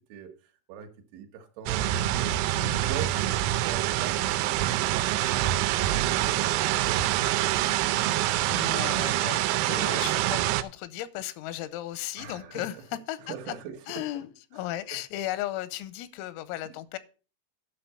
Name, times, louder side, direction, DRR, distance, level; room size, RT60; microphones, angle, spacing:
voice 1, 0.1-2.4 2.7-5.5 5.9-8.3 12.2-12.8 13.3-14.0 14.6-14.7 16.6-16.7, right 8 dB, 75° right, 4 dB, 3.3 m, -42 dB
sound 1, 1.7-10.6, right 14 dB, 90° right, 3.4 m, -26 dB
voice 2, 8.5-13.6 13.9-17.0, left 14 dB, 85° left, 15 dB, 3.4 m, -36 dB
11.5 x 5.8 x 5.6 m, 0.36 s
omnidirectional pair, 5.9 m